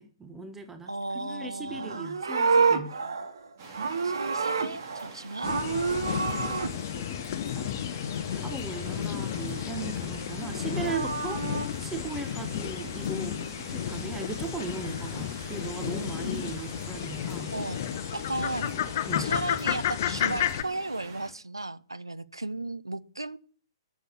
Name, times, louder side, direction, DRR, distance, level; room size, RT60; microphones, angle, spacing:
voice 1, 0.0-3.0 6.4-17.5 19.1-19.3, right 4 dB, 10° right, 8 dB, 1.3 m, -39 dB
voice 2, 0.9-2.1 4.0-5.5 6.0-6.6 17.4-17.8 18.1-18.7 19.2-23.4, right 2 dB, 80° right, 15 dB, 0.9 m, -35 dB
Livestock farm animals working animals, 1.7-5.1 5.4-6.7 10.5-11.7, right 5 dB, 60° right, 1.9 m, -28 dB
sound 1, 3.6-21.3, right 4 dB, 40° right, 4.3 m, -46 dB
sound 2, 5.4-20.6, left 10 dB, 40° left, 0.9 m, -32 dB
13.5 x 7.2 x 8.5 m, 0.43 s
figure-of-eight pair, 120°, 2 cm